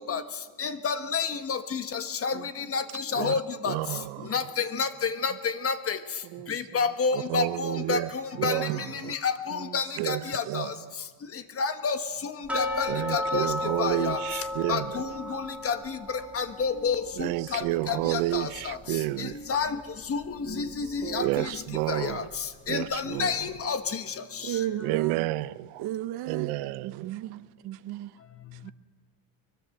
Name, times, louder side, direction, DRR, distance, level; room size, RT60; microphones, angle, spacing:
voice 1, 0.6-2.3 2.7-2.8 3.1-3.7 4.3-5.3 5.6-6.0 6.5-8.0 8.4-8.6 9.1-10.6 11.6-12.0 12.5-13.5 13.8-14.2 14.7-15.8 16.3-16.9 17.5-17.6 17.9-18.8 19.5-19.7 20.1-20.2 20.6-21.3 21.9-22.2 22.7-23.8, left 6 dB, 30° left, 1.2 m, -29 dB
voice 2, 3.6-4.4 7.1-8.1 8.4-9.2 10.0-10.8 12.9-15.4 17.2-19.4 21.2-22.3 22.7-23.7 24.8-25.8 26.3-27.2, right 18 dB, 85° right, 0.8 m, -31 dB
voice 3, 9.5-10.3 10.6-10.7 17.2-18.1 20.5-20.8 21.0-21.4 22.0-22.1 24.4-25.3 25.8-26.5 26.8-28.1 28.6-28.7, right 13 dB, 55° right, 0.8 m, -36 dB
sound 1, 12.5-19.3 19.6-19.7 20.2-20.3 20.9-21.0, left 2 dB, 5° right, 2.6 m, -35 dB
24.0 x 22.0 x 7.8 m
cardioid pair, 155°, 48 cm